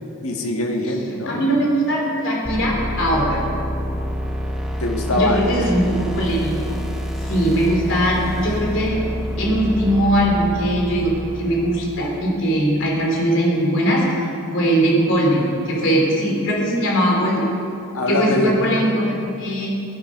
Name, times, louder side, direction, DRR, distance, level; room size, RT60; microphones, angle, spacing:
voice 1, 0.2-1.4 4.8-5.4 17.9-18.8, left 1 dB, 85° left, 2 dB, 1.7 m, -22 dB
voice 2, 1.3-3.4 5.1-6.8 7.2-9.0 9.4-11.1 11.4-14.0 14.5-17.5 18.1-19.0 19.4-19.7, right 1 dB, 60° left, -2 dB, 3.5 m, -20 dB
sound 1, 2.4-12.3, equal, ahead, 0.8 m, -28 dB
17.0 x 10.5 x 5.3 m, 2.7 s
head